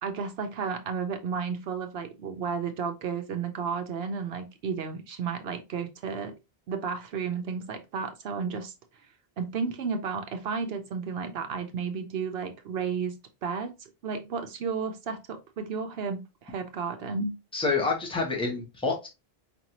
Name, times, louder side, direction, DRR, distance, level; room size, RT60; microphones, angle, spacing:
voice 1, 0.0-6.4 6.7-8.7 9.4-13.1 13.4-17.4, right 5 dB, 75° right, 0.8 m, -32 dB
voice 2, 17.5-19.1, left 4 dB, 5° left, 1.0 m, -28 dB
5.0 x 2.6 x 2.9 m
omnidirectional pair, 1.0 m